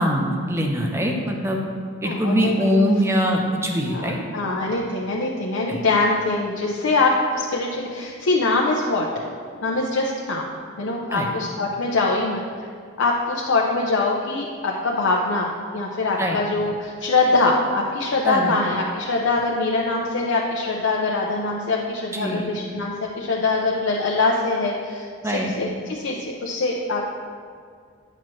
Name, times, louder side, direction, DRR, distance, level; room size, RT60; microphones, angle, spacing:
voice 1, 0.0-1.6 2.0-4.2 5.7-5.8 11.1-11.3 16.2-16.4 18.2-18.6 22.1-22.5 25.2-25.5, equal, 15° right, 1 dB, 0.6 m, -22 dB
voice 2, 2.0-2.8 3.8-9.1 9.6-10.5 10.8-12.7 13.0-27.0, left 3 dB, 85° left, -2 dB, 0.6 m, -23 dB
8.8 x 6.0 x 3.1 m, 2.1 s
head